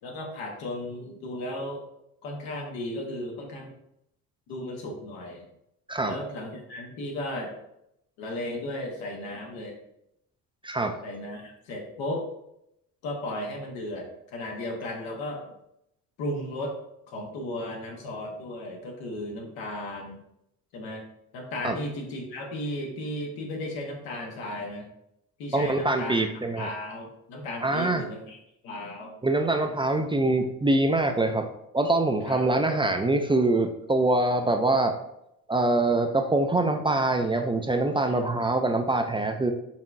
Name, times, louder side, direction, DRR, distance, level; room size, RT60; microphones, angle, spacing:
voice 1, 0.0-1.8 2.2-3.7 4.5-5.4 6.0-7.5 8.2-9.8 11.0-12.3 13.0-15.4 16.2-16.8 17.1-20.2 20.7-21.0 21.3-24.9 25.4-28.4 28.6-29.2 32.3-32.4 38.0-38.3, left 1 dB, 85° left, 0 dB, 1.3 m, -35 dB
voice 2, 10.6-11.0 21.6-21.8 25.5-26.7 27.6-28.0 29.2-35.0 35.5-39.5, right 2 dB, 15° right, 5 dB, 0.4 m, -24 dB
5.8 x 3.5 x 2.6 m, 0.80 s
cardioid pair, 85°, 36 cm